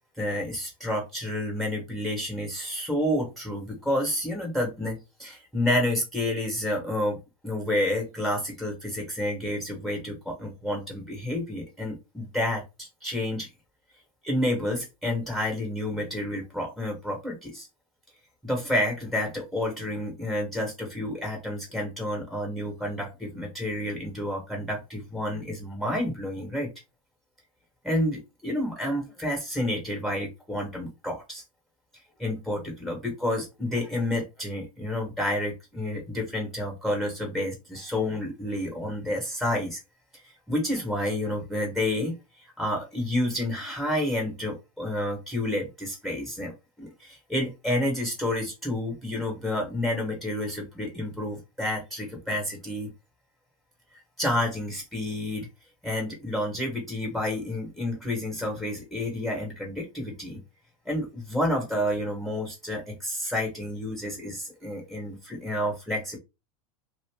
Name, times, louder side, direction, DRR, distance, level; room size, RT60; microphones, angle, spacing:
voice 1, 0.2-7.2 7.4-13.5 14.2-17.7 18.4-26.7 27.8-31.4 32.2-39.8 40.2-42.1 42.6-52.9 54.2-55.5 55.8-60.4 60.8-66.2, left 1 dB, ahead, 0 dB, 1.2 m, -30 dB
2.6 x 2.4 x 3.4 m, 0.26 s
supercardioid pair, 120°, 18 cm